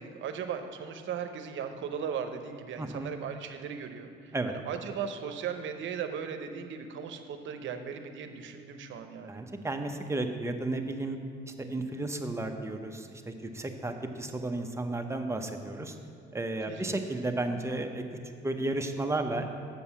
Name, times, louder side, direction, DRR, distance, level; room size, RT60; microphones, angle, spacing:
voice 1, 0.0-4.3 4.7-9.4 16.7-17.0, right 7 dB, 75° right, 7 dB, 0.7 m, -37 dB
voice 2, 2.8-3.1 4.3-4.5 9.3-11.2 11.6-16.0 16.3-18.0 18.4-19.5, right 2 dB, 15° right, 5 dB, 0.7 m, -33 dB
7.5 x 5.4 x 7.2 m, 2.3 s
cardioid pair, 90°, 20 cm